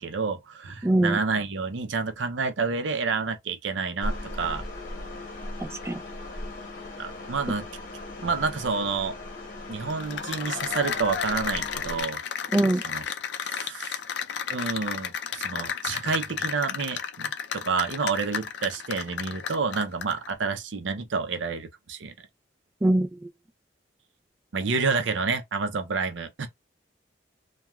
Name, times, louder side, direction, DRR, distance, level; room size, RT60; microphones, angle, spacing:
voice 1, 0.0-4.6 7.0-7.7 8.2-9.2 9.7-12.2 12.8-13.0 13.4-14.0 14.5-22.1 24.5-26.5, right 4 dB, 80° right, 0.6 m, -29 dB
voice 2, 0.8-1.2 5.6-6.0 12.5-12.8 22.8-23.1, right 1 dB, 15° right, 0.3 m, -22 dB
sound 1, 4.0-12.0, left 1 dB, 50° left, 1.0 m, -38 dB
Cheering / Applause, 9.9-20.3, left 7 dB, 65° left, 0.4 m, -32 dB
2.9 x 2.2 x 2.3 m
head